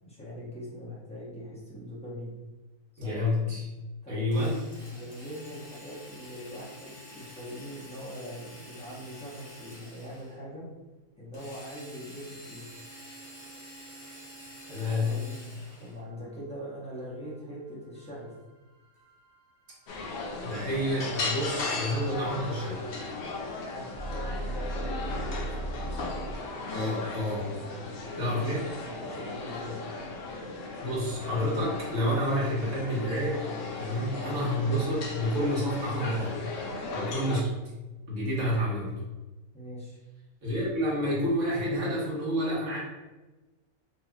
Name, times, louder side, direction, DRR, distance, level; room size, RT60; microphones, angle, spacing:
voice 1, 0.0-2.3 2.9-3.2 4.0-4.3 4.9-10.7 11.2-12.7 14.8-15.4 15.8-18.3 23.7-26.1 27.8-28.0 28.2-28.4 29.0-29.8 36.9-37.1 39.5-40.0, equal, 5° left, -8 dB, 0.7 m, -42 dB
voice 2, 3.0-3.6 4.1-4.5 14.7-15.1 20.4-22.8 26.7-27.5 28.2-28.6 30.8-33.4 33.8-36.5 36.9-37.5 38.1-38.9 40.4-42.8, equal, 55° right, -7 dB, 1.5 m, -29 dB
Drill, 4.3-10.4 11.3-16.0, equal, 50° left, 1.3 m, -48 dB
sound 1, 16.0-26.4, right 1 dB, 35° right, 0.7 m, -41 dB
sound 2, 19.9-37.4, left 3 dB, 90° left, 0.5 m, -37 dB
3.3 x 3.0 x 2.3 m, 1.1 s
omnidirectional pair, 1.6 m